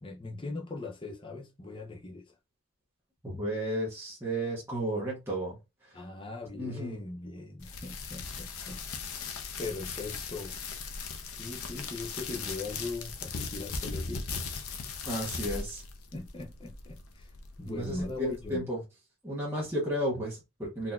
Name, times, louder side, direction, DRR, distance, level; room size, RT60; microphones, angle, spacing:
voice 1, 0.0-2.2 5.9-8.8 9.2-9.3 9.6-10.6 11.4-14.3 16.1-17.3 17.6-18.6, left 2 dB, 25° left, 0.7 m, -40 dB
voice 2, 3.2-5.6 6.6-7.0 15.1-15.8 17.7-18.8 19.2-20.9, right 1 dB, 10° right, 0.9 m, -33 dB
sound 1, 7.6-18.6, left 4 dB, 85° left, 0.6 m, -39 dB
4.0 x 2.7 x 2.3 m
head